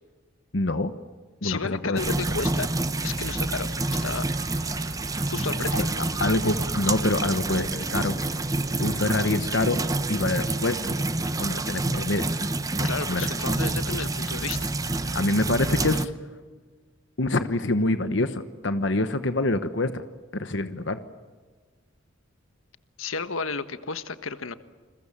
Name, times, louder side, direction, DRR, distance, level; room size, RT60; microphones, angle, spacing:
voice 1, 0.5-0.9 1.4-2.0 5.7-5.8 6.2-8.2 8.8-9.8 10.1-11.0 11.4-12.3 12.8-13.3 15.1-16.1 17.2-19.9 20.3-21.0, left 2 dB, 65° left, 10 dB, 1.2 m, -26 dB
voice 2, 1.4-2.7 3.0-3.7 4.0-4.3 5.3-5.9 12.8-14.7 23.0-24.5, left 4 dB, 85° left, 11 dB, 1.4 m, -32 dB
sound 1, 2.0-16.1, right 2 dB, 15° right, 0.9 m, -28 dB
sound 2, 3.7-9.2, right 2 dB, 35° right, 4.1 m, -46 dB
29.5 x 22.0 x 7.4 m, 1.4 s
head